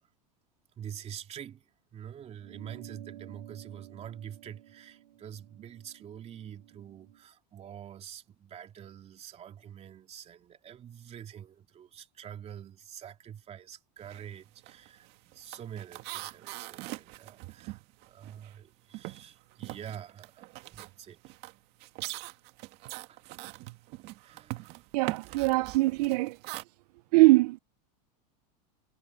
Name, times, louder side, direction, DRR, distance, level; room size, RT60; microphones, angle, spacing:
voice 1, 0.8-1.6 1.9-21.2 23.1-23.2 24.2-24.8, right 9 dB, 30° right, 2.8 m, -46 dB
sound 1, 2.4-7.2, right 13 dB, 90° right, 7.2 m, -52 dB
sound 2, 14.0-14.3 14.6-18.6 18.9-26.6, right 20 dB, 55° right, 2.0 m, -42 dB
voice 2, 24.9-26.4 27.1-27.6, right 21 dB, 70° right, 0.5 m, -22 dB
supercardioid pair, 125°, 21 cm